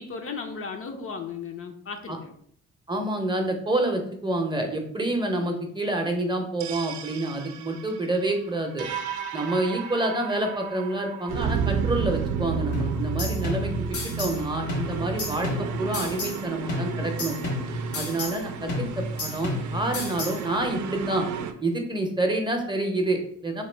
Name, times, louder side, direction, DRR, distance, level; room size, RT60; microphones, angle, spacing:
voice 1, 0.0-2.3, left 5 dB, 45° left, 4 dB, 0.6 m, -35 dB
voice 2, 2.9-8.9 9.3-17.3 17.9-21.3 21.6-23.6, right 1 dB, 15° right, 3 dB, 0.7 m, -28 dB
sound 1, 6.6-21.5, right 6 dB, 75° right, 0.5 m, -32 dB
sound 2, 12.7-14.4 14.7-16.4 16.7-18.4 18.7-20.4, left 1 dB, 75° left, 1.4 m, -31 dB
3.0 x 2.8 x 4.4 m, 0.64 s
cardioid pair, 90°, 30 cm